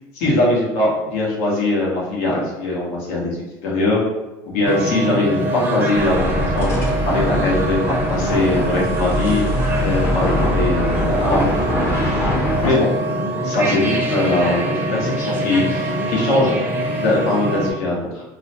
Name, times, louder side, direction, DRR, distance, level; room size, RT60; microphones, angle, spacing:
voice 1, 0.1-3.3 3.6-4.0 4.5-6.7 7.1-9.4 9.8-11.9 12.6-12.9 13.4-16.5 17.0-18.2, left 2 dB, 80° left, -4 dB, 0.9 m, -21 dB
sound 1, 4.6-17.7, right 1 dB, 20° right, 0.5 m, -24 dB
sound 2, 5.9-12.7, left 1 dB, 25° left, 0.6 m, -23 dB
2.4 x 2.0 x 2.8 m, 1.0 s
supercardioid pair, 135°, 9 cm